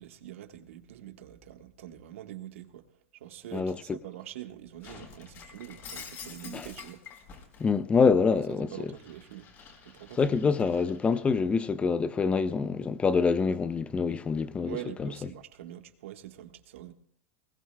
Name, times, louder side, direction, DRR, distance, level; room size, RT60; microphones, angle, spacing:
voice 1, 0.0-7.2 8.5-9.5 9.8-10.6 14.6-16.9, right 12 dB, 80° right, 1.4 m, -44 dB
voice 2, 3.5-4.0 6.5-6.7 7.6-8.7 10.2-15.1, left 5 dB, 15° left, 0.5 m, -26 dB
Shatter, 4.8-7.7 8.1-11.3, left 6 dB, 35° left, 3.6 m, -48 dB
20.0 x 19.0 x 2.2 m
supercardioid pair, 135°, 7 cm